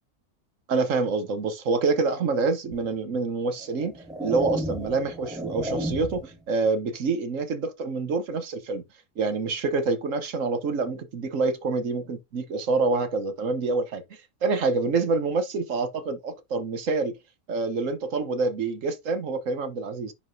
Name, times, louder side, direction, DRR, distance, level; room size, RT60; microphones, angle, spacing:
voice 1, 0.7-3.9 4.2-8.8 9.2-17.1 17.5-20.1, right 3 dB, 60° right, 1.3 m, -27 dB
sound 1, 2.7-2.9 3.6-6.4, right 1 dB, 5° right, 1.5 m, -33 dB
9.9 x 4.7 x 2.7 m
omnidirectional pair, 1.6 m